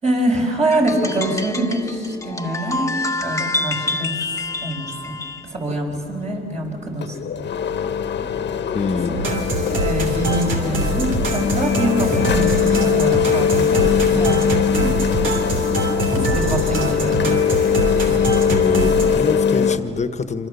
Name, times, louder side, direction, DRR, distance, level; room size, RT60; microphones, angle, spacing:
voice 1, 0.0-4.2 4.6-5.2 5.4-7.2 8.9-9.4 9.7-13.9 14.1-15.0 16.1-17.3, right 1 dB, 35° right, 1 dB, 5.7 m, -25 dB
sound 1, 0.7-5.5, left 2 dB, 15° left, 1.3 m, -27 dB
sound 2, 5.7-5.8 6.7-6.8 7.0-19.8, left 7 dB, 60° left, 1.3 m, -20 dB
voice 2, 8.7-9.2 18.5-20.5, left 4 dB, 35° left, 10 dB, 1.3 m, -24 dB
sound 3, 9.2-19.1, right 2 dB, 80° right, 3.1 m, -24 dB
28.0 x 25.0 x 7.0 m, 2.7 s
cardioid pair, 90°, 20 cm